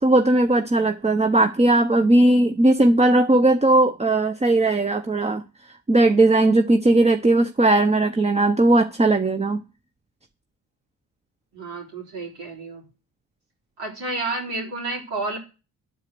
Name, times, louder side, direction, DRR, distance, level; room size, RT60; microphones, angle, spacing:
voice 1, 0.0-5.4 5.9-9.6, right 2 dB, 15° right, 0.7 m, -18 dB
voice 2, 11.5-12.8 13.8-15.4, right 2 dB, 80° right, 4.3 m, -30 dB
9.9 x 4.8 x 7.6 m
supercardioid pair, 55°, 43 cm